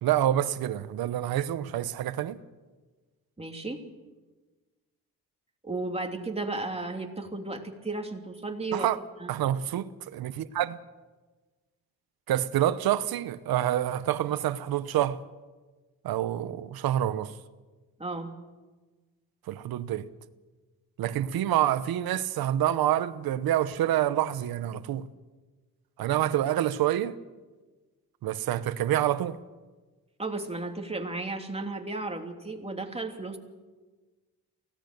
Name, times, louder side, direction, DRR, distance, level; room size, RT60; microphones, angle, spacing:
voice 1, 0.0-2.4 8.7-9.0 9.3-10.8 12.3-15.2 16.0-17.3 19.5-20.1 21.0-25.1 26.0-27.2 28.2-29.4, right 12 dB, 85° right, 1.0 m, -27 dB
voice 2, 3.4-3.8 5.6-8.9 9.2-9.3 18.0-18.3 30.2-33.4, right 2 dB, 15° right, 3.0 m, -34 dB
23.5 x 17.5 x 6.7 m
cardioid pair, 70°, 35 cm